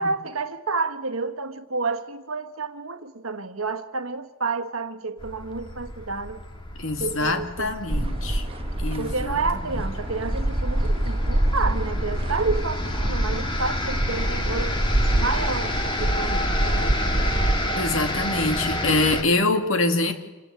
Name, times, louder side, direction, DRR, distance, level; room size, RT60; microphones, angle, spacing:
voice 1, 0.0-6.4 7.0-7.7 9.0-14.8 15.1-16.9, right 3 dB, 70° right, 1.5 m, -30 dB
sound 1, 5.2-19.2, left 1 dB, 25° left, 2.1 m, -30 dB
voice 2, 6.8-8.5 8.8-9.4 17.7-20.1, left 2 dB, 65° left, 2.3 m, -24 dB
sound 2, 7.9-17.6, right 1 dB, 25° right, 1.1 m, -26 dB
28.0 x 16.5 x 8.2 m
head